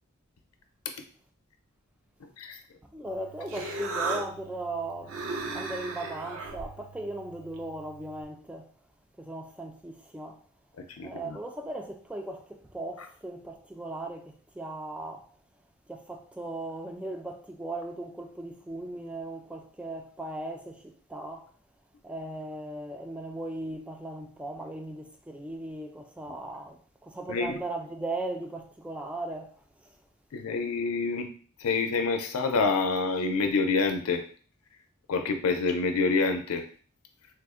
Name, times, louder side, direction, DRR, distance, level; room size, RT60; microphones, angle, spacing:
voice 1, 2.2-2.6 10.8-11.4 27.3-27.6 30.3-31.3 31.6-34.2 35.1-36.7, left 4 dB, 90° left, 0.5 m, -27 dB
voice 2, 2.8-5.2 5.5-8.7 9.2-10.4 11.0-15.3 15.9-21.5 22.0-30.0, right 2 dB, 5° right, 0.3 m, -38 dB
Human voice, 3.1-8.2, right 3 dB, 70° right, 0.5 m, -37 dB
3.3 x 2.1 x 3.5 m
head